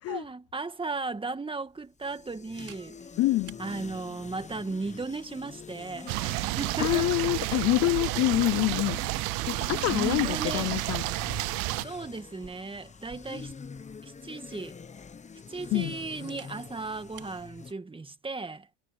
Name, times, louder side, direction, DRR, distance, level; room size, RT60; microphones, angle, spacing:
voice 1, 0.1-3.0 3.6-7.1 9.6-10.7 11.7-13.5 14.0-14.8 15.5-18.7, right 3 dB, 15° right, 1.9 m, -36 dB
Camera, 0.7-17.4, right 9 dB, 35° right, 4.8 m, -59 dB
sound 1, 1.8-17.7, left 5 dB, 15° left, 1.1 m, -45 dB
voice 2, 3.2-3.6 6.8-9.0 9.4-11.0 15.7-15.9, left 17 dB, 40° left, 0.4 m, -26 dB
sound 2, 6.1-11.8, right 26 dB, 60° right, 0.6 m, -31 dB
supercardioid pair, 115°, 40 cm